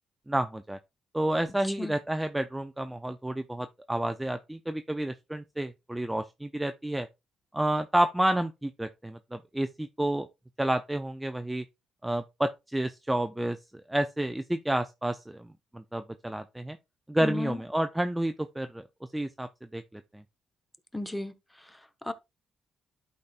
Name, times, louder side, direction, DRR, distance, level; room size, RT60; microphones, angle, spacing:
voice 1, 0.3-0.8 1.1-7.1 7.5-10.3 10.6-11.6 12.0-13.6 13.9-15.5 15.7-16.8 17.1-18.8 19.1-20.0, right 1 dB, 10° right, 0.5 m, -30 dB
voice 2, 1.6-2.0 17.2-17.6 20.9-22.1, left 2 dB, 10° left, 0.9 m, -36 dB
12.0 x 4.2 x 2.4 m
cardioid pair, 90°, 0 cm